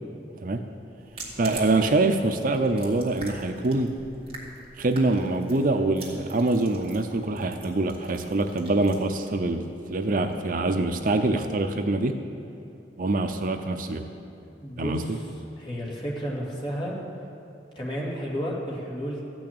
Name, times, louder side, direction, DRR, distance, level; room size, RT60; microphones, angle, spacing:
sound 1, 1.0-11.7, right 3 dB, 30° right, 2.3 m, -46 dB
voice 1, 1.4-4.0 4.8-12.2 13.0-14.1 14.8-15.2, right 2 dB, 50° right, 7 dB, 0.6 m, -25 dB
voice 2, 14.6-15.0 15.6-16.9 17.8-19.2, equal, 30° left, -4 dB, 2.5 m, -31 dB
14.5 x 6.3 x 8.7 m, 2.7 s
head